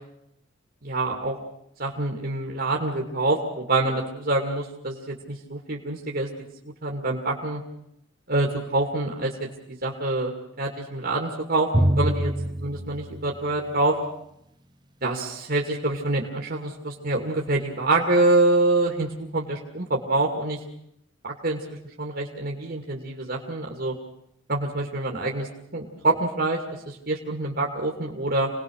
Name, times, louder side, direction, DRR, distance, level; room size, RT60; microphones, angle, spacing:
voice 1, 0.8-1.4 1.8-6.3 6.8-7.6 8.3-10.3 10.6-12.3 12.6-14.0 15.0-20.6 21.2-23.9 24.5-25.5 25.7-26.6 26.9-28.5, right 2 dB, 50° right, 0 dB, 2.5 m, -26 dB
Drum, 11.7-14.1, right 1 dB, 20° right, 1.2 m, -26 dB
27.5 x 19.5 x 6.5 m, 0.78 s
head